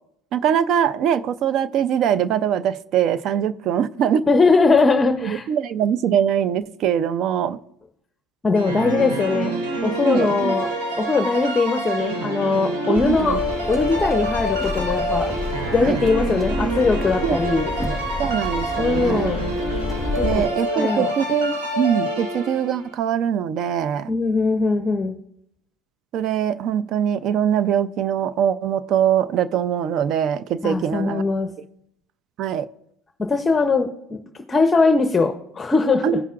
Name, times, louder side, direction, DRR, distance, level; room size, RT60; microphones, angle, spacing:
voice 1, 0.3-4.3 5.2-7.6 10.0-10.5 12.9-13.4 15.8-16.0 17.2-17.6 17.9-19.3 20.2-24.1 26.1-31.2 32.4-32.7 36.0-36.2, right 9 dB, 55° right, 0.5 m, -22 dB
voice 2, 4.3-5.5 8.4-9.5 9.8-10.7 11.0-13.4 13.7-15.3 15.7-17.7 18.8-19.4 20.2-20.4 20.7-21.1 24.1-25.1 30.6-31.5 33.2-34.2 34.5-36.2, left 4 dB, 20° left, 0.7 m, -20 dB
sound 1, 8.5-22.9, right 1 dB, 85° right, 2.4 m, -27 dB
sound 2, 12.9-20.5, left 3 dB, 5° left, 1.0 m, -29 dB
16.5 x 5.6 x 2.4 m
supercardioid pair, 95°, 0 cm